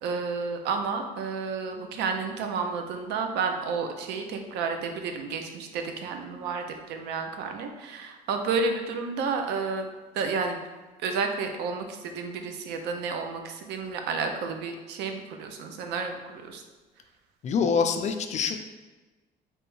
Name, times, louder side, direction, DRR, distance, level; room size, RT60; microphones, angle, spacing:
voice 1, 0.0-9.9 10.1-10.6 11.0-16.6, right 4 dB, 85° right, 5 dB, 0.5 m, -31 dB
voice 2, 17.4-18.6, left 6 dB, 45° left, 6 dB, 0.4 m, -25 dB
3.4 x 3.0 x 3.1 m, 1.2 s
cardioid pair, 110°, 17 cm